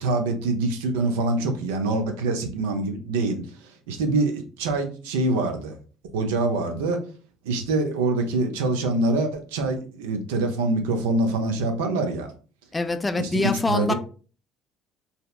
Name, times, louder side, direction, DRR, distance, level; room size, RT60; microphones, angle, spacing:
voice 1, 0.0-3.4 3.9-5.7 6.1-7.0 7.4-12.3 13.2-13.9, right 2 dB, 85° right, 0.4 m, -25 dB
voice 2, 12.7-13.9, left 3 dB, 20° left, 0.3 m, -24 dB
2.7 x 2.1 x 2.2 m
hypercardioid pair, 70°, 0 cm